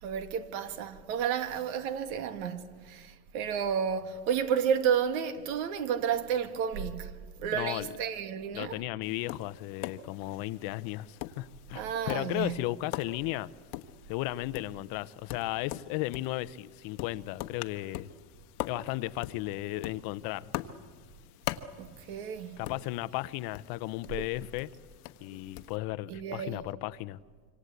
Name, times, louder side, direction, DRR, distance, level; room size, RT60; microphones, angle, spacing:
voice 1, 0.0-7.1 7.4-8.8 11.7-12.6 21.8-22.6 26.1-26.6, right 8 dB, 70° right, 2.4 m, -31 dB
voice 2, 7.5-7.9 8.5-13.5 14.1-18.1 18.7-20.5 22.6-24.7 25.2-27.2, left 17 dB, 50° left, 0.8 m, -35 dB
Tap, 9.0-25.8, left 14 dB, 80° left, 1.3 m, -43 dB
26.5 x 25.0 x 8.3 m
supercardioid pair, 130°, 45 cm